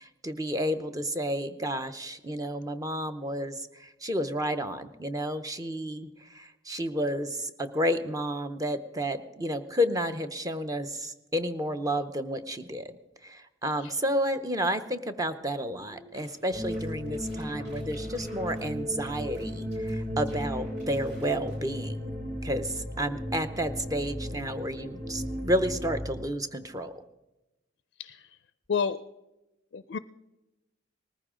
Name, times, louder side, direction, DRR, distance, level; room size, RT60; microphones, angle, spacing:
voice 1, 0.0-12.9 13.2-22.1 22.4-26.9, equal, 20° right, 10 dB, 0.7 m, -31 dB
voice 2, 13.8-13.9 28.0-28.2 28.7-29.0 29.7-30.0, left 6 dB, 55° left, 13 dB, 0.4 m, -29 dB
sound 1, 15.9-18.7 19.0-20.0 20.2-21.6, right 1 dB, 70° right, 6.2 m, -52 dB
sound 2, 16.5-26.0, equal, 45° right, 4.0 m, -35 dB
19.5 x 14.5 x 3.8 m, 1.0 s
head